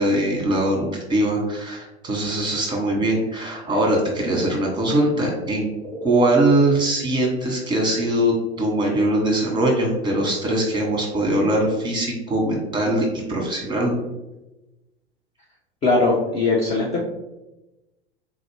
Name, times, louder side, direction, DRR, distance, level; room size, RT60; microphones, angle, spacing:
voice 1, 0.0-14.0, right 1 dB, 15° right, 0 dB, 1.0 m, -22 dB
voice 2, 15.8-17.0, left 3 dB, 20° left, -2 dB, 0.4 m, -20 dB
3.8 x 2.4 x 3.2 m, 1.0 s
figure-of-eight pair, 85°, 32 cm